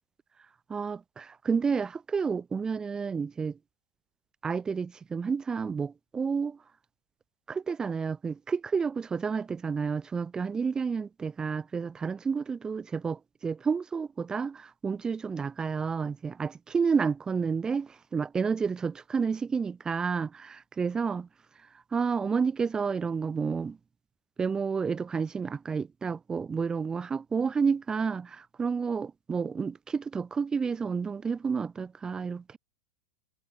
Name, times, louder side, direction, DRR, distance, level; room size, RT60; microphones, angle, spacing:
voice 1, 0.7-3.6 4.4-6.6 7.5-21.3 21.9-23.8 24.4-32.6, right 5 dB, 20° right, 4.2 m, -30 dB
hypercardioid pair, 110°, 4 cm